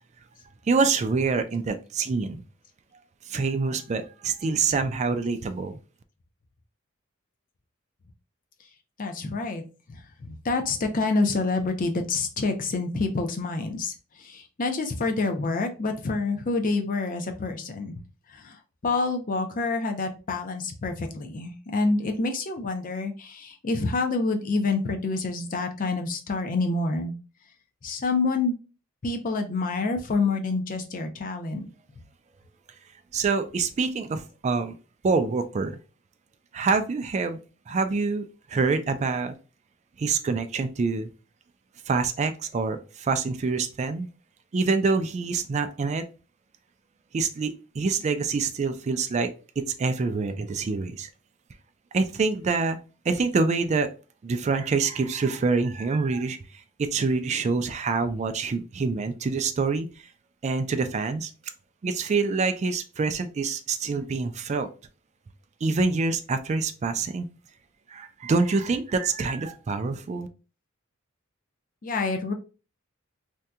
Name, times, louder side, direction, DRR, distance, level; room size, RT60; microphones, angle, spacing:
voice 1, 0.7-2.4 3.3-5.8 33.1-34.7 35.0-35.8 36.5-37.4 37.7-39.3 40.0-41.1 41.9-44.1 44.5-46.0 47.1-49.3 49.8-51.1 51.9-52.8 53.1-53.9 54.2-56.4 56.8-59.9 60.4-61.3 61.8-64.7 65.6-67.3 67.9-70.3, right 4 dB, 35° right, 9 dB, 0.3 m, -26 dB
voice 2, 9.0-13.9 14.2-17.9 18.3-18.6 18.8-27.1 27.8-28.5 29.0-31.7 71.8-72.3, left 3 dB, 40° left, 5 dB, 0.6 m, -27 dB
2.7 x 2.2 x 3.5 m, 0.34 s
head